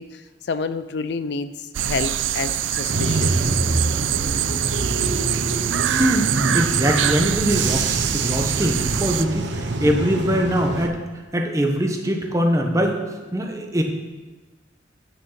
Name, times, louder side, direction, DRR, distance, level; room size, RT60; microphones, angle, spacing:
voice 1, 0.0-3.5 4.4-4.5, left 4 dB, 65° left, 12 dB, 0.4 m, -29 dB
sound 1, 1.7-9.2, right 11 dB, 90° right, 0.4 m, -24 dB
Bus / Engine, 2.9-10.9, right 2 dB, 75° right, 0.9 m, -26 dB
voice 2, 6.0-11.0 11.3-13.8, equal, 15° right, 3 dB, 1.0 m, -22 dB
9.4 x 6.5 x 5.8 m, 1.3 s
head